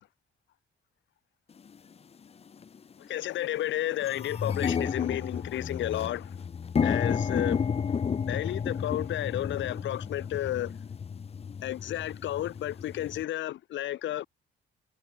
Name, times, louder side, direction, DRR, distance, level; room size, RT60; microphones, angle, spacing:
sound 1, 1.7-1.8 2.5-2.8 3.2-3.3 3.5-13.2, left 6 dB, 30° left, 0.6 m, -32 dB
voice 1, 3.1-6.3 6.8-7.6 8.3-10.7 11.6-14.3, left 13 dB, 70° left, 0.8 m, -32 dB
cardioid pair, 90°, 20 cm